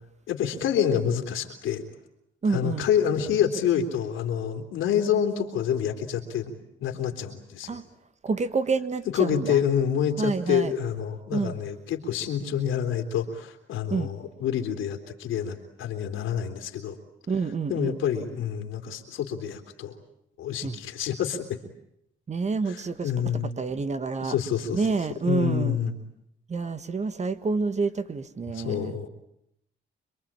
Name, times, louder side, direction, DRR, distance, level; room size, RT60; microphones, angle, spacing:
voice 1, 0.3-1.8 2.5-6.5 6.8-7.8 9.1-17.0 17.7-19.9 20.4-21.6 22.7-23.5 24.2-24.9 25.3-26.0 28.5-29.1, left 8 dB, 85° left, 3.4 m, -27 dB
voice 2, 2.4-2.9 7.7-7.8 8.2-9.6 10.2-10.7 11.3-11.5 13.9-14.1 17.3-18.0 20.6-20.8 22.3-23.1 23.6-24.3 24.7-25.8 26.5-29.0, right 4 dB, 35° right, 1.6 m, -28 dB
27.0 x 23.0 x 8.9 m
cardioid pair, 90°, 20 cm